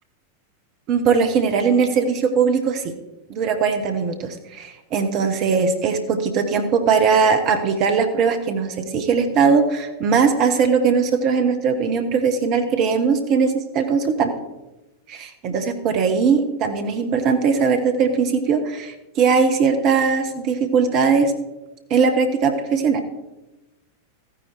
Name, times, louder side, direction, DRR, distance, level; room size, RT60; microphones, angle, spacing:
voice 1, 0.9-2.9 3.3-14.3 15.1-21.3 21.9-23.0, right 5 dB, 40° right, 7 dB, 1.3 m, -20 dB
14.5 x 10.0 x 4.6 m, 1.0 s
figure-of-eight pair, 90°, 0 cm